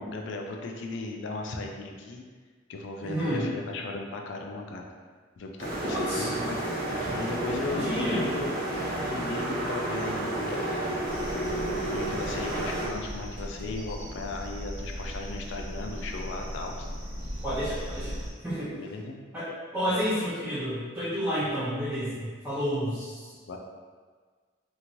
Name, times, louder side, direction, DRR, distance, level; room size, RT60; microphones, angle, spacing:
voice 1, 0.0-2.2 2.7-4.8 5.4-6.6 7.1-8.5 8.9-11.1 11.6-16.9 18.0-18.2 18.7-19.2 19.8-20.0 23.5-23.6, left 3 dB, 65° left, 2 dB, 0.4 m, -36 dB
voice 2, 3.0-3.5 5.8-6.3 7.6-8.2 17.4-18.1 18.4-18.7 19.3-23.3, equal, 10° right, -12 dB, 0.6 m, -30 dB
sound 1, 5.6-12.9, right 1 dB, 50° right, 0.9 m, -31 dB
sound 2, 11.1-18.3, equal, 90° right, 0.9 m, -38 dB
2.9 x 2.8 x 2.6 m, 1.5 s
head